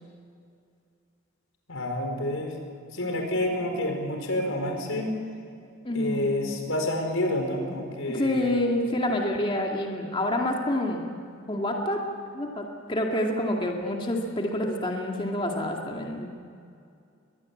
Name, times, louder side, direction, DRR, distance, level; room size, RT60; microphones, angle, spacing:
voice 1, 1.7-2.5 2.9-5.1 5.9-8.6, left 1 dB, 90° left, 3 dB, 4.9 m, -28 dB
voice 2, 5.8-6.4 8.1-11.1 11.5-12.1 12.3-16.3, left 1 dB, 25° left, 1 dB, 2.1 m, -28 dB
23.0 x 20.5 x 8.5 m, 2.4 s
head